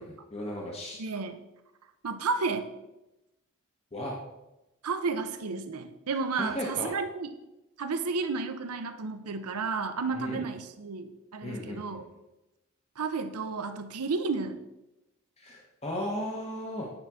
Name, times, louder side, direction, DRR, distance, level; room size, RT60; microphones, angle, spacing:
voice 1, 0.0-1.0 3.9-4.2 6.3-7.0 10.1-10.5 11.4-12.0 15.4-16.9, left 1 dB, 30° left, -2 dB, 0.9 m, -36 dB
voice 2, 1.0-1.4 2.0-2.7 4.8-7.3 7.8-12.1 13.0-14.6, right 4 dB, 85° right, 9 dB, 0.7 m, -32 dB
8.8 x 5.8 x 3.5 m, 0.96 s
head